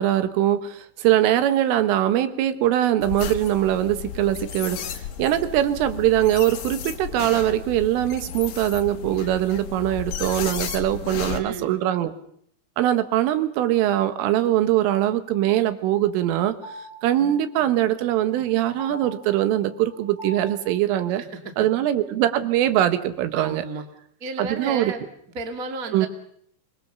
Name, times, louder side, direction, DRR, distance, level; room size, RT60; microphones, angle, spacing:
voice 1, 0.0-12.1 12.8-16.6 17.0-21.2 21.6-23.7 24.4-24.9 25.9-26.1, right 12 dB, 75° right, 10 dB, 3.8 m, -22 dB
sound 1, 3.0-11.4, left 8 dB, 75° left, 1.7 m, -34 dB
voice 2, 11.2-11.8 21.2-21.5 23.3-23.8 24.2-25.0 25.3-26.1, right 3 dB, 55° right, 5 dB, 0.9 m, -33 dB
sound 2, 15.3-20.6, right 1 dB, 10° right, 5.7 m, -43 dB
25.5 x 22.0 x 6.9 m, 0.66 s
omnidirectional pair, 6.0 m